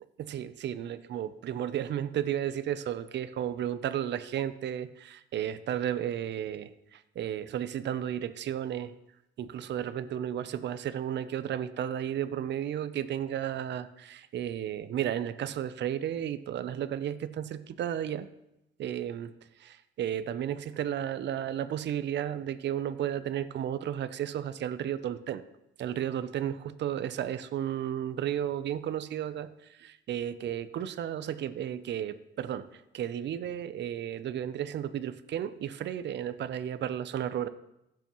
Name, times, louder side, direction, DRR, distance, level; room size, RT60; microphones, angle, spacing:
voice 1, 0.2-8.9 9.4-18.3 18.8-19.3 19.6-25.4 25.8-37.5, right 10 dB, 60° right, 13 dB, 0.6 m, -33 dB
16.0 x 6.9 x 3.0 m, 0.88 s
cardioid pair, 90°, 20 cm